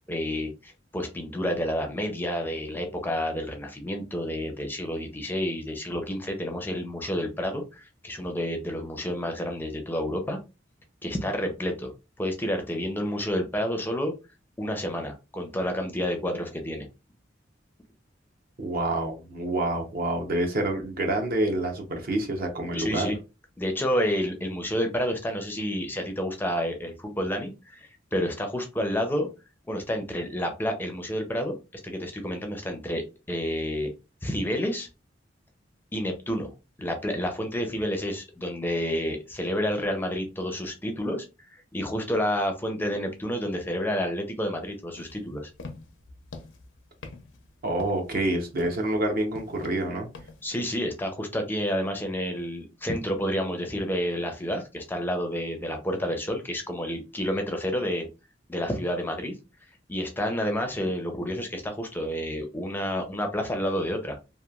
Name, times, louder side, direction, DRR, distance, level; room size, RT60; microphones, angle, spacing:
voice 1, 0.1-10.4 11.0-14.1 14.6-16.9 22.7-23.2 23.6-29.3 29.7-31.5 31.8-33.9 34.2-34.9 35.9-36.5 36.8-45.5 50.4-58.1 58.5-59.3 59.9-64.2, equal, 10° left, 0.4 m, -29 dB
voice 2, 18.6-23.1 47.6-50.1, right 1 dB, 55° right, 0.7 m, -27 dB
sound 1, 45.0-50.5, left 3 dB, 85° left, 0.5 m, -45 dB
2.9 x 2.2 x 2.3 m
head